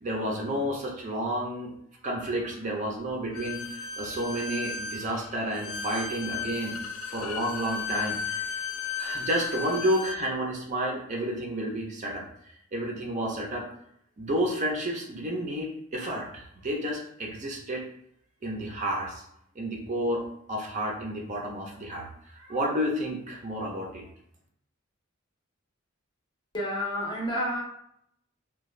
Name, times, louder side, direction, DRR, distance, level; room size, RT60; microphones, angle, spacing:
voice 1, 0.0-1.7 2.0-6.8 7.1-8.5 9.0-13.7 14.2-17.8 18.4-19.2 19.6-24.0, right 1 dB, 35° right, -1 dB, 0.4 m, -31 dB
Bowed string instrument, 3.3-10.2, left 5 dB, 80° left, 0.3 m, -35 dB
voice 2, 26.5-27.6, equal, 25° left, -2 dB, 0.6 m, -29 dB
2.4 x 2.2 x 3.1 m, 0.72 s
head